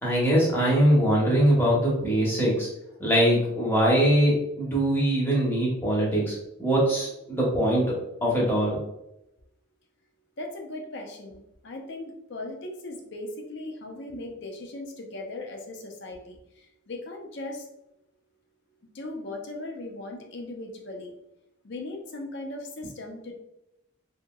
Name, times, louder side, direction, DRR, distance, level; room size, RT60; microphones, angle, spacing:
voice 1, 0.0-2.7 3.0-7.9 8.2-8.8, right 1 dB, 10° left, -5 dB, 0.8 m, -22 dB
voice 2, 10.4-11.4 11.6-16.3 16.9-17.6 18.9-21.1 21.6-23.3, left 2 dB, 55° left, 2 dB, 0.5 m, -38 dB
2.9 x 2.8 x 2.2 m, 0.85 s
head